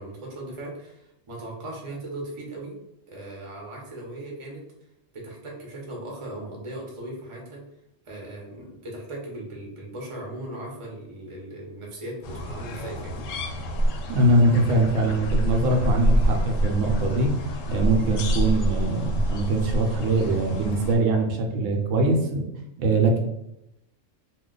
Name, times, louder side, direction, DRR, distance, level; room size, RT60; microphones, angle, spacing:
voice 1, 0.0-2.8 3.1-4.6 5.1-7.6 8.0-13.3, right 1 dB, 30° right, -2 dB, 0.7 m, -38 dB
sound 1, 12.2-21.0, equal, 80° left, 0.9 m, -27 dB
voice 2, 14.1-17.3 17.7-22.5 22.8-23.2, right 2 dB, 80° right, 2 dB, 0.9 m, -22 dB
2.5 x 2.2 x 3.7 m, 0.86 s
omnidirectional pair, 1.3 m